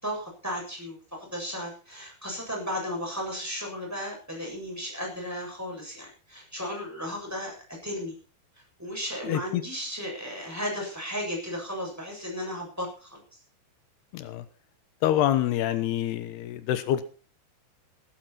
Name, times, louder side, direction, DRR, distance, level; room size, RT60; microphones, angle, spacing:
voice 1, 0.0-8.1 8.8-13.2, equal, 5° right, 0 dB, 7.2 m, -35 dB
voice 2, 9.2-9.6 14.1-14.4 15.0-17.0, left 12 dB, 90° left, 11 dB, 3.2 m, -26 dB
16.5 x 13.0 x 4.5 m, 0.36 s
omnidirectional pair, 4.5 m